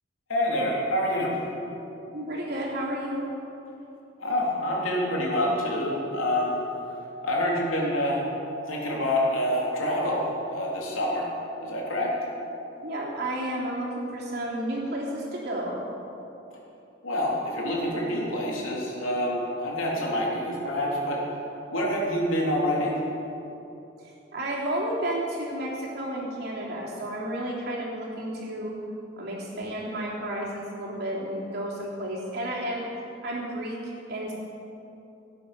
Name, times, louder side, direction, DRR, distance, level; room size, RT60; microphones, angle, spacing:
voice 1, 0.3-1.4 4.2-6.6 7.2-8.2 8.7-11.3 11.6-12.1 17.0-21.3 21.7-23.0, left 1 dB, 85° left, -3 dB, 3.4 m, -27 dB
voice 2, 2.1-3.3 12.8-15.9 24.0-28.7 29.2-32.9 33.2-34.3, right 1 dB, 50° right, -5 dB, 3.5 m, -32 dB
18.5 x 9.2 x 6.1 m, 2.9 s
head